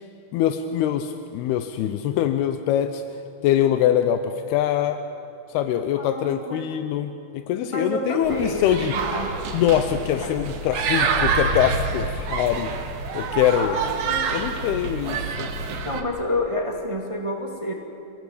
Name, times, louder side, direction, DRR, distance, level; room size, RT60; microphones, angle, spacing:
voice 1, 0.3-3.0 3.4-5.0 5.5-8.9 9.5-12.7 13.1-13.8 14.3-15.5, left 10 dB, 85° left, 9 dB, 2.8 m, -23 dB
voice 2, 6.0-6.7 7.7-9.4 10.2-10.4 13.5-14.6 15.8-17.7, left 1 dB, 15° right, 2 dB, 1.2 m, -29 dB
sound 1, 8.2-16.0, right 5 dB, 70° right, 3.4 m, -27 dB
27.5 x 18.0 x 8.7 m, 3.0 s
omnidirectional pair, 4.5 m